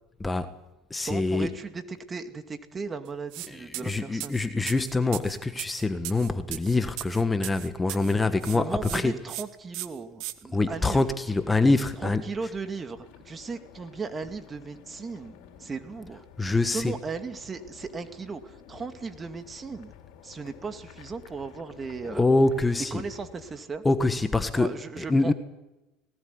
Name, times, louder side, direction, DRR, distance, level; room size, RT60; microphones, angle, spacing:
voice 1, 0.2-0.5 0.9-1.5 3.5-9.1 10.5-12.2 16.4-16.9 22.0-23.0 23.8-25.3, left 3 dB, 15° left, 9 dB, 1.4 m, -25 dB
voice 2, 1.1-4.3 8.5-11.1 12.0-16.2 16.6-19.9 20.2-22.2 22.9-23.8 24.6-25.3, right 4 dB, 25° right, 8 dB, 2.3 m, -37 dB
sound 1, 3.3-3.5 3.7-8.1 8.4-9.0 9.3-9.4 9.7-10.3, right 16 dB, 70° right, 1.4 m, -37 dB
sound 2, 10.6-23.6, left 10 dB, 75° left, 4.0 m, -52 dB
19.5 x 18.0 x 9.7 m, 1.0 s
supercardioid pair, 105°, 0 cm